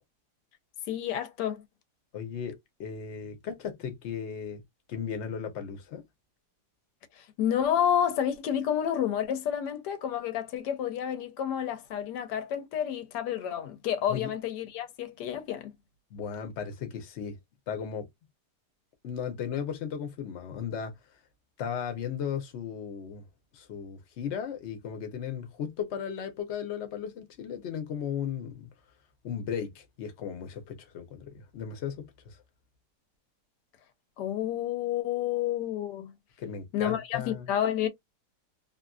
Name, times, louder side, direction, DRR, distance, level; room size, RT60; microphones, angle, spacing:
voice 1, 0.9-1.6 7.2-15.7 34.2-36.1 36.7-37.9, left 10 dB, 90° left, 1.2 m, -30 dB
voice 2, 2.1-2.5 2.8-4.6 4.9-6.0 14.1-14.3 16.1-17.4 17.7-18.1 19.0-20.9 21.6-23.2 23.5-28.7 29.2-32.4 36.4-37.5, left 7 dB, 55° left, 0.9 m, -36 dB
2.8 x 2.5 x 2.3 m
omnidirectional pair, 1.8 m